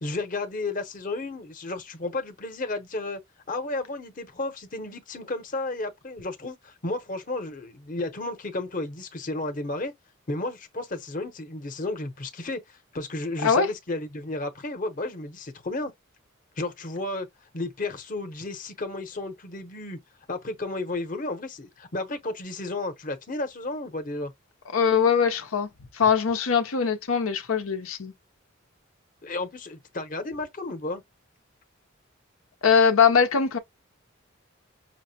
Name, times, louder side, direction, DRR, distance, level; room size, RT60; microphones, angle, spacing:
voice 1, 0.0-3.2 3.5-9.9 10.3-15.9 16.6-17.3 17.5-20.0 20.3-24.3 29.2-31.0, left 2 dB, 40° left, 0.8 m, -33 dB
voice 2, 24.7-25.7 25.9-28.1 32.6-33.6, left 6 dB, 85° left, 0.7 m, -21 dB
5.8 x 2.1 x 2.8 m
head